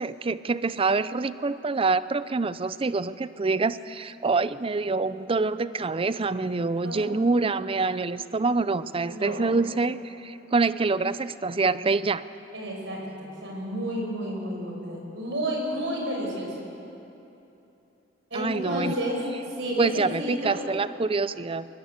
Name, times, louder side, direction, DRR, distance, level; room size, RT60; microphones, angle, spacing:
voice 1, 0.0-12.2 18.3-18.9 19.8-21.7, right 3 dB, 30° right, 15 dB, 0.5 m, -26 dB
voice 2, 6.8-7.2 9.1-9.4 12.5-16.7 18.3-19.2 19.5-20.6, right 1 dB, 70° right, -1 dB, 6.1 m, -31 dB
21.5 x 20.0 x 8.0 m, 3.0 s
head